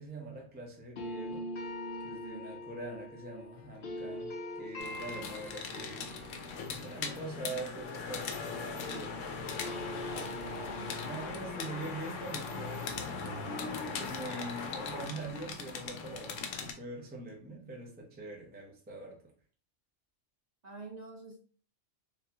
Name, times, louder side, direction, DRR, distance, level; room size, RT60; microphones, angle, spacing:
voice 1, 0.0-1.5 2.0-6.1 6.7-9.2 10.3-19.2, right 2 dB, 10° right, 0.4 m, -44 dB
sound 1, 1.0-9.0 9.3-14.3, left 1 dB, 55° left, 0.8 m, -44 dB
sound 2, 4.8-16.7, left 5 dB, 85° left, 1.0 m, -39 dB
voice 2, 10.6-11.0 20.6-21.4, right 3 dB, 40° right, 0.8 m, -47 dB
3.9 x 2.3 x 2.8 m
omnidirectional pair, 1.3 m